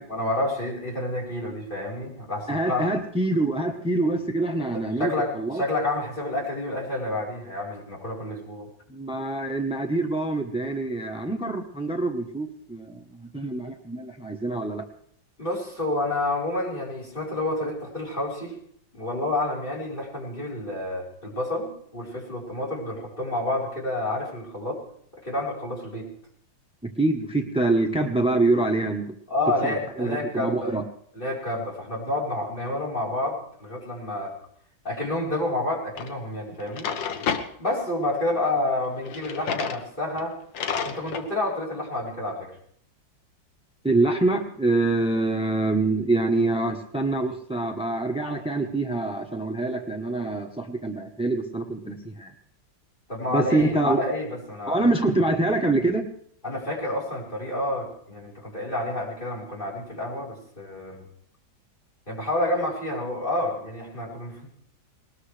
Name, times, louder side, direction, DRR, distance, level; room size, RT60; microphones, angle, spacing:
voice 1, 0.1-2.9 4.7-8.7 15.4-18.6 18.9-24.8 25.2-26.1 29.3-30.8 31.1-34.3 34.8-36.9 37.6-40.3 40.8-42.6 53.1-54.9 56.4-61.0 62.1-64.5, left 1 dB, 25° left, -3 dB, 4.5 m, -29 dB
voice 2, 2.5-5.6 8.9-14.9 26.8-29.2 29.6-30.8 43.8-52.3 53.3-54.0 54.7-56.1, right 2 dB, 5° right, 5 dB, 0.4 m, -25 dB
Drawer open or close, 36.0-36.1 36.6-37.5 39.0-39.8 40.2-40.3 40.5-41.3, left 6 dB, 75° left, 1.8 m, -30 dB
20.5 x 19.5 x 3.3 m, 0.66 s
omnidirectional pair, 2.1 m